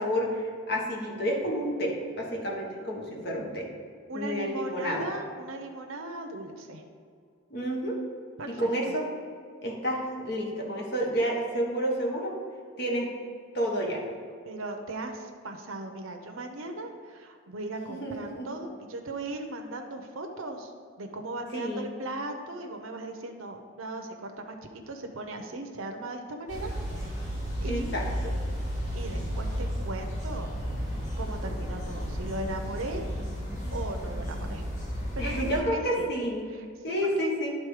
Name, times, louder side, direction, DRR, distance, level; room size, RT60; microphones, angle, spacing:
voice 1, 0.0-3.7 4.1-5.1 7.5-8.0 8.4-9.0 9.6-12.3 12.8-13.1 13.5-14.0 18.0-18.5 21.5-21.9 27.6-28.0 35.2-36.4 36.8-37.6, equal, 55° left, -1 dB, 1.4 m, -30 dB
voice 2, 4.1-6.8 8.4-8.9 14.4-20.7 21.0-24.5 24.9-27.1 27.6-27.9 28.9-30.5 31.2-33.0 33.7-34.6 35.2-36.1 36.5-37.3, right 2 dB, 80° right, 3 dB, 0.8 m, -38 dB
sound 1, 26.5-35.6, equal, 40° left, 1.7 m, -33 dB
10.5 x 4.1 x 4.9 m, 2.2 s
head